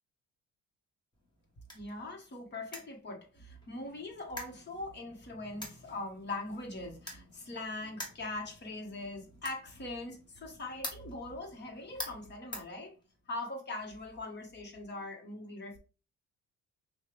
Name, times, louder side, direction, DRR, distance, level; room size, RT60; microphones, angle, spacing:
sound 1, 1.1-13.4, left 1 dB, 15° left, 1.4 m, -48 dB
voice 1, 1.7-12.9 13.3-15.8, left 2 dB, 35° left, 1.4 m, -41 dB
5.4 x 2.4 x 3.3 m
cardioid pair, 115°, 29 cm